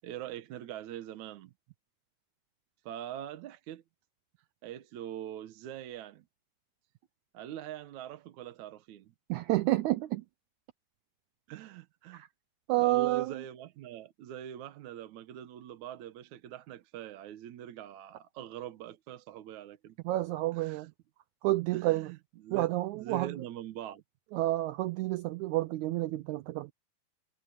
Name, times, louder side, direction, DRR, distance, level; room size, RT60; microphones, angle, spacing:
voice 1, 0.0-1.5 2.9-3.8 4.6-6.3 7.3-9.1 11.5-12.2 12.8-20.0 20.5-20.9 21.7-24.0, right 11 dB, 70° right, 2.2 m, -43 dB
voice 2, 9.3-10.2 12.1-12.3 12.7-13.4 20.0-20.9 21.4-22.1 22.5-23.4 24.3-26.7, right 17 dB, 90° right, 1.7 m, -29 dB
omnidirectional pair, 3.9 m